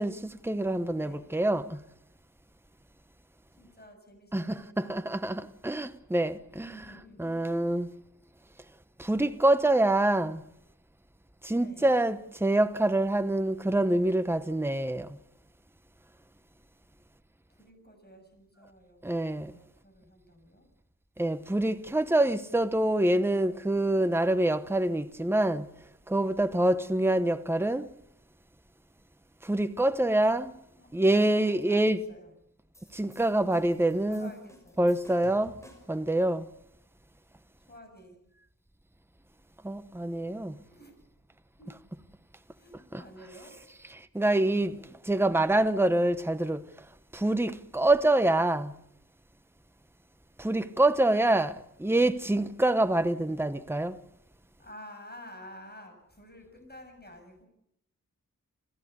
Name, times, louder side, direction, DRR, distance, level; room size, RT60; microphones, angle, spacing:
voice 1, 0.0-1.8 4.3-6.8 7.2-7.9 9.0-10.4 11.4-15.2 19.0-19.5 21.2-25.7 26.1-27.9 29.4-30.5 30.9-32.0 32.9-34.3 34.8-35.5 35.9-36.5 39.6-40.6 42.9-43.0 44.1-46.6 47.1-48.8 50.4-54.0, right 1 dB, 5° right, 1.0 m, -26 dB
voice 2, 3.5-5.1 6.6-7.4 11.6-11.9 17.5-19.0 19.6-20.7 30.7-30.9 31.3-32.3 34.1-34.9 37.6-38.2 40.6-41.0 41.6-41.7 42.5-43.6 53.2-53.5 54.6-57.5, left 1 dB, 30° left, 7.1 m, -51 dB
sound 1, 32.7-36.0, equal, 10° left, 5.9 m, -55 dB
29.0 x 14.5 x 8.1 m
wide cardioid pair, 85°, 33 cm